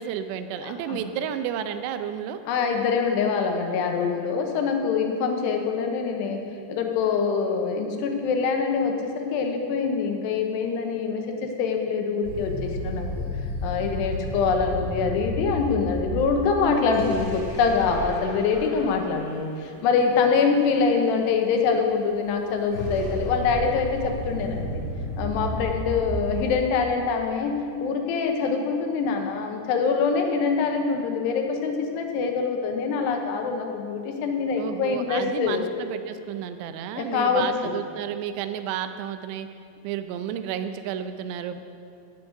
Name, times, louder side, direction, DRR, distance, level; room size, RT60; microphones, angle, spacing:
voice 1, 0.0-2.4 34.6-39.5 39.8-41.6, right 9 dB, 85° right, 9 dB, 2.8 m, -31 dB
voice 2, 0.6-1.0 2.5-6.4 6.7-13.3 13.6-24.8 25.2-35.6 36.9-37.7, left 5 dB, 85° left, 3 dB, 3.1 m, -24 dB
sound 1, 12.2-19.4 22.3-26.6, equal, 50° left, 1.0 m, -32 dB
16.5 x 6.3 x 6.4 m, 2.4 s
omnidirectional pair, 4.8 m